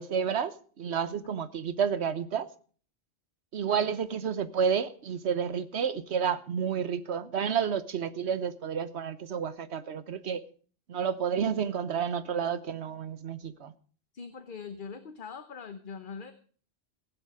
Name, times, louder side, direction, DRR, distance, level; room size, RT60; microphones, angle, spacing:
voice 1, 0.0-2.5 3.5-10.4 10.9-13.7, right 7 dB, 80° right, 1.2 m, -30 dB
voice 2, 14.1-16.3, left 5 dB, 55° left, 1.1 m, -42 dB
16.0 x 11.0 x 4.9 m
omnidirectional pair, 1.1 m